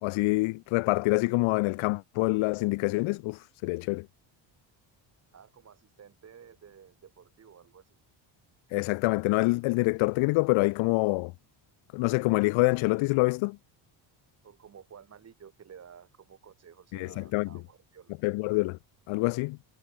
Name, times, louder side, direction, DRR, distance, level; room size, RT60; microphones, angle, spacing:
voice 1, 0.0-4.1 8.7-11.3 11.9-13.6 16.9-17.6 18.2-18.8 19.1-19.6, left 23 dB, 80° left, 0.6 m, -26 dB
voice 2, 5.3-8.0 14.4-18.1, right 7 dB, 30° right, 5.9 m, -53 dB
cardioid pair, 165°, 47 cm